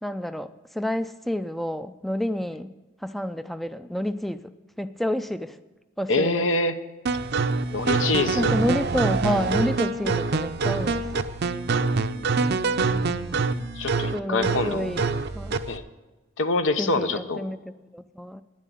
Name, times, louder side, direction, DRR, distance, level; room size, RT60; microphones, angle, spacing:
voice 1, 0.0-2.7 3.0-4.5 4.8-5.6 6.0-6.4 8.3-11.3 14.1-15.1 15.3-15.5 16.8-18.4, equal, ahead, 11 dB, 0.3 m, -29 dB
voice 2, 6.1-6.7 7.7-8.5 13.8-14.9 15.7-15.8 16.4-17.4, left 2 dB, 80° left, 10 dB, 0.8 m, -25 dB
sound 1, 7.1-15.8, right 4 dB, 60° right, 0.6 m, -25 dB
10.0 x 7.4 x 9.2 m, 1.1 s
head